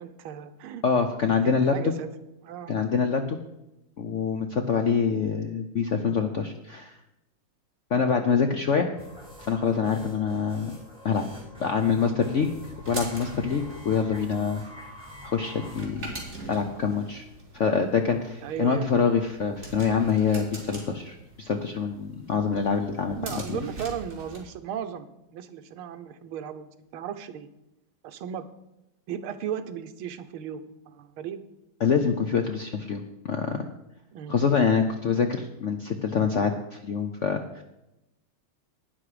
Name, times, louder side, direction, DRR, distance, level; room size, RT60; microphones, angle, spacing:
voice 1, 0.0-0.8 1.4-2.1 2.4-2.8 18.4-18.9 23.1-27.5 28.0-28.5 29.1-31.4 34.1-34.4, right 8 dB, 90° right, 10 dB, 1.7 m, -36 dB
voice 2, 0.8-1.9 2.7-3.4 4.0-6.9 7.9-8.9 9.4-10.7 11.0-11.2 11.6-12.5 12.9-14.6 15.2-16.1 16.5-17.3 17.5-23.2 31.8-33.6 34.3-37.6, left 6 dB, 75° left, 6 dB, 0.7 m, -25 dB
sound 1, 8.9-15.8, left 1 dB, ahead, 4.8 m, -45 dB
sound 2, 12.4-24.4, right 2 dB, 35° right, 2.8 m, -43 dB
12.0 x 9.6 x 5.0 m, 0.91 s
omnidirectional pair, 2.3 m